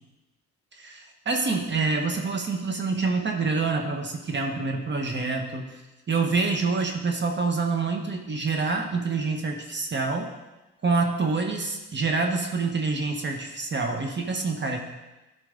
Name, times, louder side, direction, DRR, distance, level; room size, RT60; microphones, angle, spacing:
voice 1, 0.7-5.7 6.1-10.3 10.8-14.8, right 4 dB, 35° right, 3 dB, 1.2 m, -26 dB
12.0 x 5.1 x 3.9 m, 1.1 s
cardioid pair, 90°, 30 cm